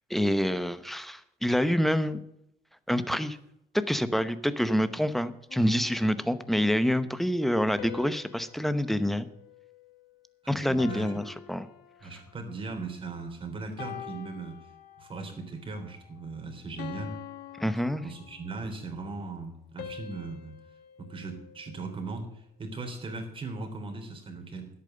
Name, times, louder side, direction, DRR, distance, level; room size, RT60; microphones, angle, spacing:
voice 1, 0.1-2.2 2.9-3.4 3.7-9.3 10.5-11.7 17.6-18.0, equal, ahead, 13 dB, 0.8 m, -27 dB
sound 1, 5.5-6.8 7.8-10.3 10.8-12.5 13.1-13.3 13.8-15.3 15.8-16.1 16.8-18.7 19.8-22.2, left 9 dB, 70° left, 1.3 m, -46 dB
voice 2, 10.4-11.2 12.0-14.6 15.0-17.2 18.0-20.6 21.0-24.7, right 3 dB, 30° right, 3 dB, 3.5 m, -38 dB
10.5 x 8.6 x 6.8 m, 0.79 s
cardioid pair, 110°, 17 cm